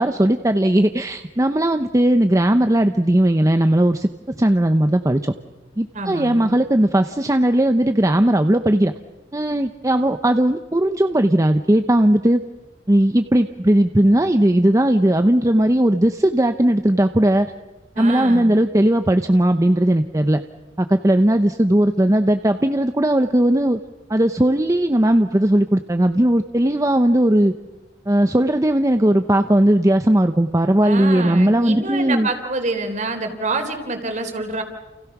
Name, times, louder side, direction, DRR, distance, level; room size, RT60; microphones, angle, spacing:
voice 1, 0.0-4.1 4.4-5.3 5.8-8.9 9.3-12.4 12.9-17.5 18.0-20.4 20.8-23.8 24.1-27.5 28.1-32.3, right 1 dB, 20° right, 7 dB, 0.8 m, -17 dB
voice 2, 5.9-6.5 18.0-18.5 30.8-34.6, right 2 dB, 45° right, 6 dB, 3.7 m, -26 dB
29.5 x 29.5 x 6.0 m, 1.1 s
head